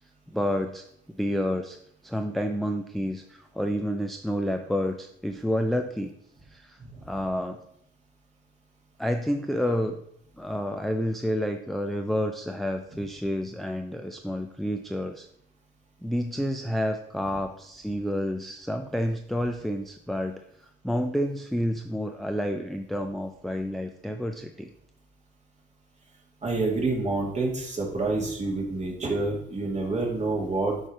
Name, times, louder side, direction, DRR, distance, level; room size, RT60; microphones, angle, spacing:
voice 1, 0.3-1.8 2.0-6.1 6.5-6.8 7.1-7.6 9.0-10.0 10.4-15.3 16.0-24.7, equal, ahead, 6 dB, 0.4 m, -29 dB
voice 2, 26.4-30.7, right 3 dB, 35° right, -1 dB, 2.3 m, -27 dB
7.7 x 3.2 x 5.5 m, 0.73 s
cardioid pair, 90°, 20 cm